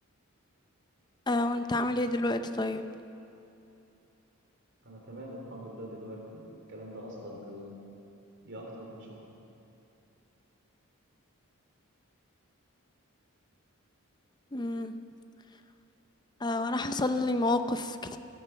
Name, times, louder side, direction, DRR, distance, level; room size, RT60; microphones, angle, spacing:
voice 1, 1.3-2.9 14.5-15.0 16.4-18.2, left 2 dB, 20° left, 9 dB, 0.6 m, -29 dB
voice 2, 4.8-7.8 8.4-9.2, equal, 55° right, -1 dB, 3.2 m, -43 dB
15.5 x 14.0 x 6.0 m, 2.8 s
head